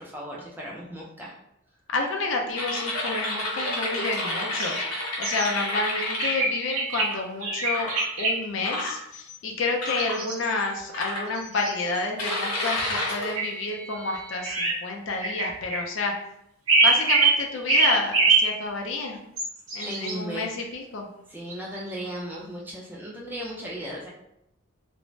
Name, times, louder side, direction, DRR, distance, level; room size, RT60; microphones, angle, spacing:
voice 1, 0.0-1.3 19.8-20.5 21.3-24.1, equal, 10° right, -3 dB, 0.3 m, -36 dB
voice 2, 1.9-4.8 5.2-7.9 8.2-16.1 16.8-19.2 19.7-21.1, left 3 dB, 60° left, 2 dB, 0.4 m, -29 dB
mad keyboard typing, 2.6-7.1 7.7-8.1 8.6-9.4 9.8-10.2 10.9-11.7 12.2-14.5, left 1 dB, 90° left, 0.8 m, -31 dB
sound 1, 4.6-4.8 5.2-5.5 6.2-7.1 7.4-8.3 9.9-10.8 11.4-12.0 12.9-13.1 13.4-13.5 14.4-14.7 15.2-15.8 16.7-17.4 17.7-18.5 19.4-20.1 21.5-21.9, right 3 dB, 70° right, 0.8 m, -23 dB
2.5 x 2.0 x 3.1 m, 0.79 s
head